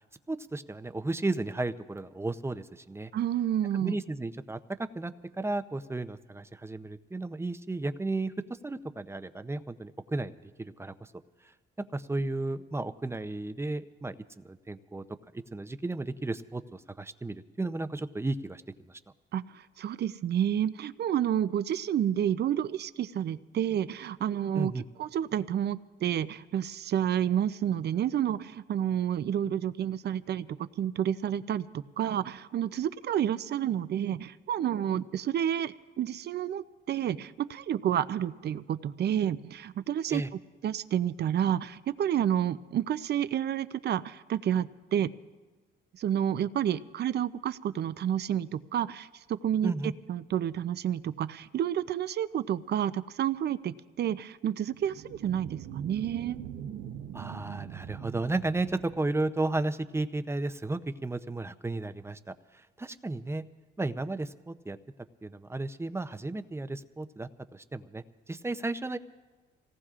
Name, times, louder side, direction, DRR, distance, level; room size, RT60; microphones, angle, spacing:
voice 1, 0.3-3.1 3.7-5.1 5.4-8.3 8.6-10.3 10.6-11.1 11.8-15.0 15.3-19.0 24.5-24.8 40.1-40.3 49.6-49.9 57.1-62.2 62.5-63.4 63.8-64.8 65.2-69.0, right 2 dB, 15° right, 11 dB, 0.6 m, -34 dB
voice 2, 3.1-4.0 19.3-24.7 25.0-40.2 40.6-45.1 46.0-49.7 50.1-56.4, right 10 dB, 55° right, 15 dB, 0.5 m, -30 dB
sound 1, 54.7-59.7, right 9 dB, 85° right, 0.9 m, -42 dB
27.0 x 18.0 x 2.5 m, 1.3 s
cardioid pair, 90°, 20 cm